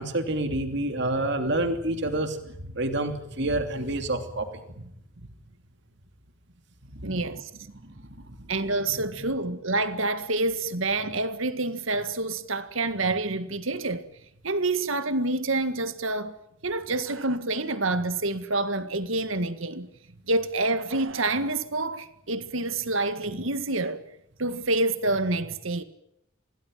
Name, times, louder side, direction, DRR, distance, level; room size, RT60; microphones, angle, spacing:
voice 1, 0.0-2.4 2.7-4.6 6.9-7.3 7.8-8.0 8.9-9.3, right 1 dB, 55° right, 2.9 m, -28 dB
voice 2, 7.0-7.5 8.5-14.1 14.4-16.3 16.6-19.9 20.3-24.0 24.4-25.8, right 2 dB, 75° right, 1.9 m, -27 dB
27.0 x 19.0 x 9.1 m
head